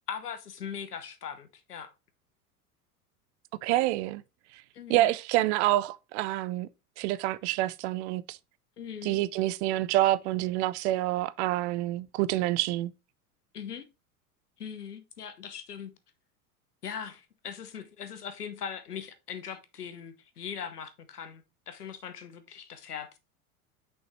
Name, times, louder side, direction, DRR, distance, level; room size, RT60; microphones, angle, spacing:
voice 1, 0.0-1.9 4.7-5.1 8.8-9.2 13.5-13.9 14.6-15.9 16.8-23.2, left 7 dB, 85° left, 1.1 m, -40 dB
voice 2, 3.6-4.2 4.9-6.7 7.0-8.4 9.0-12.9, right 15 dB, 50° right, 0.6 m, -27 dB
6.2 x 5.4 x 3.1 m
figure-of-eight pair, 80°, 45 cm